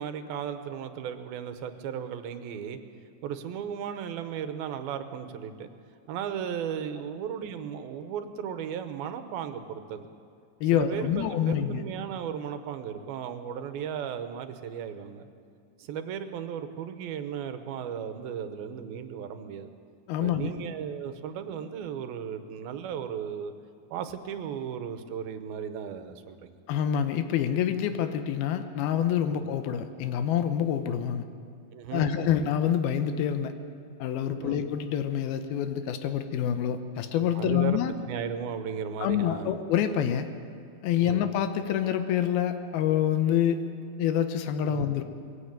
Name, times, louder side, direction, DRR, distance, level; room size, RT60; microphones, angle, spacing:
voice 1, 0.0-2.8 3.2-5.7 6.1-10.1 10.7-15.3 15.8-19.7 20.2-23.5 23.9-26.5 29.3-29.5 31.7-32.1 34.4-34.6 37.3-37.8 38.1-39.6 41.0-41.2 44.7-44.9, right 8 dB, 85° right, 9 dB, 2.9 m, -35 dB
voice 2, 10.6-11.8 20.1-20.5 26.7-31.2 31.9-33.5 34.0-37.9 39.0-40.3 40.8-43.7 44.0-45.0, left 9 dB, 90° left, 9 dB, 2.8 m, -27 dB
21.0 x 16.0 x 8.9 m, 2.3 s
omnidirectional pair, 4.2 m